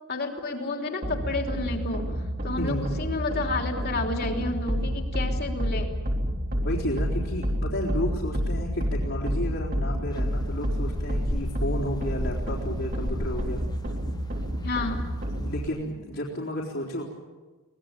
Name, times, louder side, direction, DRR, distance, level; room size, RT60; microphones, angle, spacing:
voice 1, 0.1-5.9 14.6-15.1, left 2 dB, 50° left, 3 dB, 3.2 m, -31 dB
sound 1, 1.0-15.7, equal, 45° right, 3.2 m, -29 dB
voice 2, 2.6-2.9 6.6-13.6 15.3-17.0, equal, 65° left, -5 dB, 3.9 m, -32 dB
sound 2, 10.1-15.7, left 1 dB, 20° left, 0.9 m, -37 dB
24.0 x 19.0 x 8.9 m, 1.3 s
head